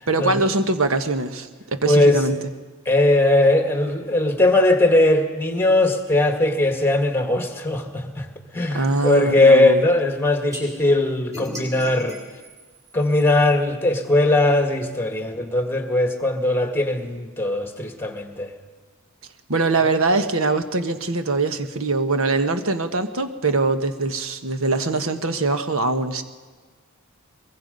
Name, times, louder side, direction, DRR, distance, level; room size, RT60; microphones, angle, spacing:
voice 1, 0.1-2.4 8.7-9.8 19.5-26.2, right 3 dB, 65° right, 8 dB, 1.4 m, -22 dB
voice 2, 1.9-2.2 2.9-8.3 8.5-12.2 12.9-18.5, left 2 dB, 10° left, 5 dB, 2.0 m, -19 dB
sound 1, 10.5-10.6 11.3-13.5, equal, 15° right, 6.5 m, -36 dB
23.0 x 22.0 x 5.4 m, 1.5 s
head